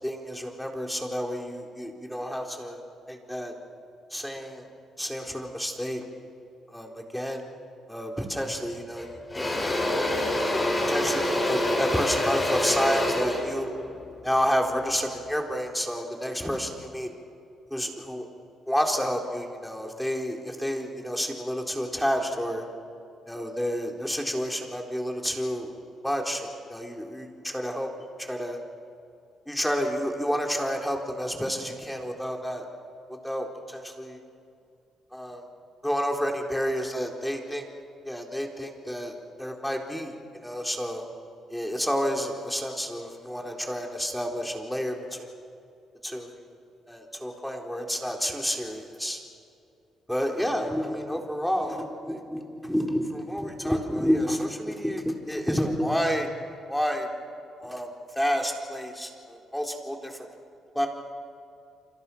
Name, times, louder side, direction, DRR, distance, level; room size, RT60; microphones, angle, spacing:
voice 1, 0.0-2.8 3.1-3.5 4.1-4.6 5.0-6.0 6.7-7.5 7.9-9.9 10.5-13.7 14.2-17.1 17.7-18.3 18.7-22.6 23.3-25.7 26.0-27.9 28.2-28.6 29.5-32.7 33.1-34.2 35.1-35.4 35.8-37.7 38.0-40.1 40.4-41.1 41.5-44.9 45.2-45.3 46.0-46.5 46.9-49.2 50.1-56.3 56.7-57.1 57.6-60.3 60.7-60.9, equal, 5° left, 2 dB, 4.0 m, -30 dB
Engine / Drill, 8.4-8.6 9.0-15.1, left 1 dB, 20° left, 7.8 m, -27 dB
29.5 x 25.5 x 6.2 m, 2.6 s
cardioid pair, 90°, 0 cm